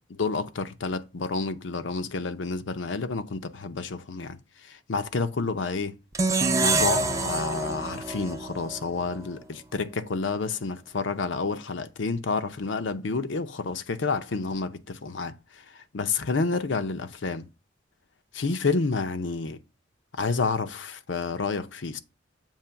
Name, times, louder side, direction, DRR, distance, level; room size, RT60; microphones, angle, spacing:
voice 1, 0.1-5.9 6.6-17.5 18.3-19.6 20.1-22.0, left 4 dB, 80° left, 0.6 m, -29 dB
sound 1, 6.1-9.3, right 3 dB, 15° right, 0.5 m, -27 dB
7.3 x 3.0 x 5.6 m
head